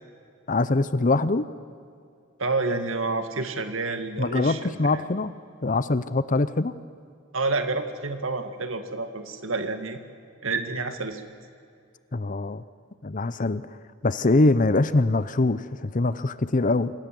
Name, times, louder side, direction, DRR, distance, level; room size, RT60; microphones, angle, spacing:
voice 1, 0.5-1.5 4.2-5.3 5.6-6.7 12.1-12.6 13.0-13.8 14.0-16.9, left 2 dB, 40° left, 14 dB, 0.7 m, -23 dB
voice 2, 2.4-5.0 7.3-10.0 10.4-11.2, right 3 dB, 75° right, 7 dB, 2.2 m, -29 dB
27.0 x 26.0 x 7.8 m, 2.3 s
head